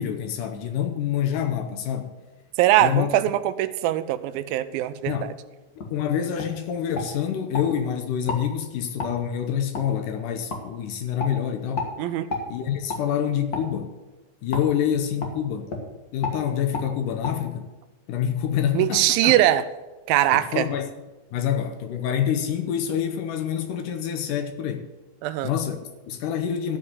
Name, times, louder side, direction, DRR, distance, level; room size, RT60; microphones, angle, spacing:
voice 1, 0.0-2.1 2.8-3.1 5.1-5.3 5.9-11.9 12.5-13.9 14.4-15.7 16.1-17.7 18.1-19.4 20.3-20.9 21.3-24.9 25.4-26.8, left 9 dB, 75° left, 2.3 m, -27 dB
voice 2, 2.6-5.3 12.0-12.3 18.7-19.7 20.1-20.7 25.2-25.5, right 13 dB, 85° right, 2.4 m, -21 dB
sound 1, 5.8-5.9 6.4-6.5 6.9-7.7 8.2-8.4 9.0-9.1 9.7-9.9 10.5-10.6 11.2-11.3 11.8-11.9 12.3-12.5 12.9-13.0 13.5-13.7 14.5-14.7 15.2-15.3 15.7-15.8 16.2-16.4 16.7-16.9 17.2-17.3, left 3 dB, 45° left, 1.3 m, -30 dB
13.0 x 5.3 x 8.2 m
omnidirectional pair, 4.2 m